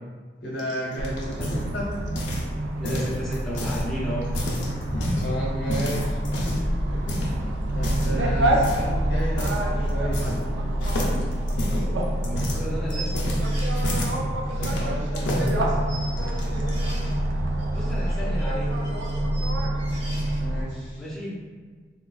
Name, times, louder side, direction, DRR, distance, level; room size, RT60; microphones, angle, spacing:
voice 1, 0.4-1.9 5.2-10.2 14.5-16.6 20.4-21.1, equal, 70° left, -6 dB, 0.9 m, -34 dB
sound 1, 0.6-2.5 2.8-3.8 4.2-5.3 5.7-6.7 7.1-7.3 7.8-8.2 8.6-8.9 9.4-9.6 9.9-10.5 10.8-14.2 14.6-15.5 16.2-16.7, left 1 dB, 90° left, 0.6 m, -30 dB
sound 2, 1.0-20.6, right 1 dB, 85° right, 0.4 m, -26 dB
voice 2, 2.8-4.3 12.2-13.1 17.7-18.9 21.0-21.4, equal, ahead, -7 dB, 0.5 m, -33 dB
sound 3, 11.2-11.3 11.7-11.8 12.9-13.9 14.4-15.5 15.8-17.2 17.6-20.4, right 2 dB, 35° right, 1.1 m, -42 dB
3.5 x 2.3 x 2.3 m, 1.5 s
head